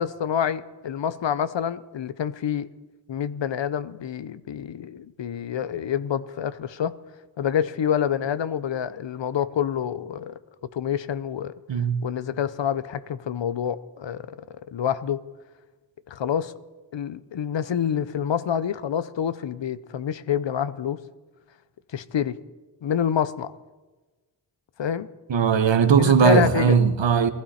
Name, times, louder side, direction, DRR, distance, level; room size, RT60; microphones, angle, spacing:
voice 1, 0.0-2.7 3.1-7.0 7.4-10.4 10.7-11.5 12.0-14.3 14.7-15.2 16.1-16.5 16.9-21.0 21.9-22.4 22.8-23.5 24.8-25.1 26.0-26.8, left 9 dB, 80° left, 0.7 m, -27 dB
voice 2, 11.7-12.0 25.3-27.3, right 6 dB, 80° right, 1.1 m, -19 dB
19.5 x 15.0 x 4.3 m
wide cardioid pair, 65°, 44 cm